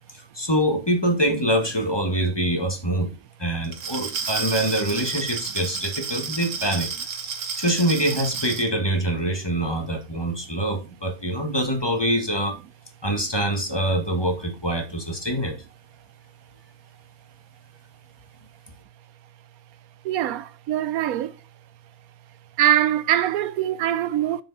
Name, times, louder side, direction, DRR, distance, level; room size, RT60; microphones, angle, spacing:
voice 1, 0.1-3.1 3.4-6.9 7.6-12.6 13.0-15.6, right 1 dB, 15° left, 1.6 m, -24 dB
Glass, 3.6-8.7, right 6 dB, 65° right, 1.4 m, -31 dB
voice 2, 20.0-21.4 22.6-24.4, right 11 dB, 85° right, 1.1 m, -23 dB
6.9 x 6.4 x 4.1 m
omnidirectional pair, 1.5 m